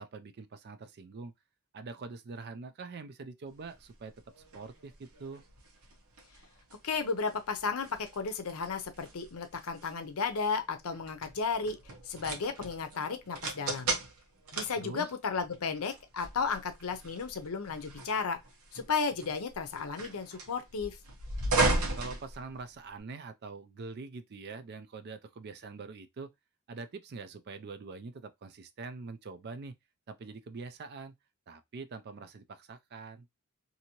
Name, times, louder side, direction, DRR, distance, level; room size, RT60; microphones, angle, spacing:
voice 1, 0.0-1.3 1.7-4.1 4.5-5.4 14.8-15.1 22.0-26.3 26.7-29.7 30.1-31.1 31.5-33.3, right 4 dB, 50° right, 0.4 m, -44 dB
sound 1, 3.6-23.0, right 2 dB, 85° right, 1.0 m, -37 dB
voice 2, 6.8-11.8 12.1-13.9 14.5-18.4 18.7-21.0, left 5 dB, 75° left, 0.6 m, -34 dB
2.7 x 2.7 x 2.8 m
head